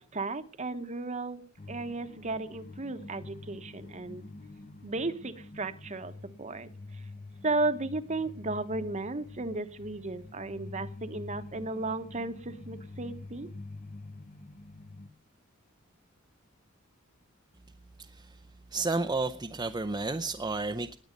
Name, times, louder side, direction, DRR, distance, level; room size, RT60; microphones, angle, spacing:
voice 1, 0.0-4.2 4.8-6.1 6.4-6.7 7.4-13.5, right 2 dB, 35° right, 1.1 m, -34 dB
sound 1, 1.6-15.1, left 2 dB, 35° left, 1.1 m, -46 dB
voice 2, 18.7-21.0, right 3 dB, 20° right, 0.7 m, -31 dB
20.0 x 8.6 x 5.2 m
head